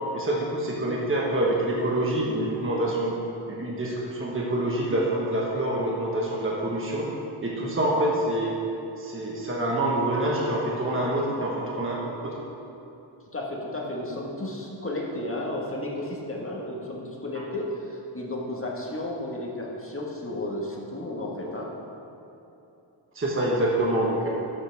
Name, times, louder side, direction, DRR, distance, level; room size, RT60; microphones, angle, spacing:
voice 1, 0.1-3.2 3.5-7.1 7.4-8.6 9.0-12.3 17.3-17.4 23.1-24.3, right 1 dB, 25° right, -4 dB, 1.4 m, -26 dB
voice 2, 13.3-21.7, left 1 dB, 25° left, -3 dB, 1.6 m, -33 dB
12.5 x 7.7 x 3.5 m, 2.9 s
wide cardioid pair, 100°, 49 cm